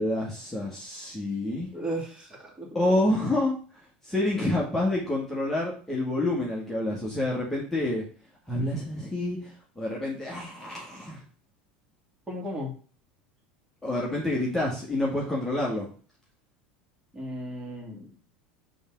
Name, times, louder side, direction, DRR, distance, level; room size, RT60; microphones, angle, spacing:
voice 1, 0.0-1.7 2.7-3.6 4.0-8.0 8.5-11.2 13.8-15.8, left 1 dB, 5° left, -4 dB, 1.6 m, -28 dB
voice 2, 1.7-2.7 12.3-12.7 17.1-18.1, equal, 20° right, -2 dB, 2.5 m, -35 dB
5.4 x 3.5 x 5.1 m, 0.40 s
hypercardioid pair, 85°, 5 cm